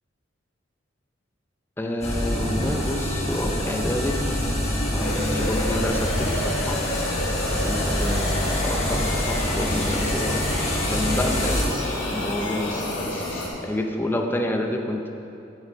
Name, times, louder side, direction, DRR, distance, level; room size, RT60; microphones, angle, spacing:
voice 1, 1.8-4.2 4.9-6.8 7.6-10.4 10.9-13.2 13.6-15.1, left 1 dB, 10° left, 2 dB, 0.5 m, -28 dB
sound 1, 2.0-11.6, left 1 dB, 35° left, 1.5 m, -26 dB
sound 2, 5.0-13.5, left 1 dB, 90° left, 1.3 m, -30 dB
7.9 x 6.7 x 4.5 m, 2.7 s
head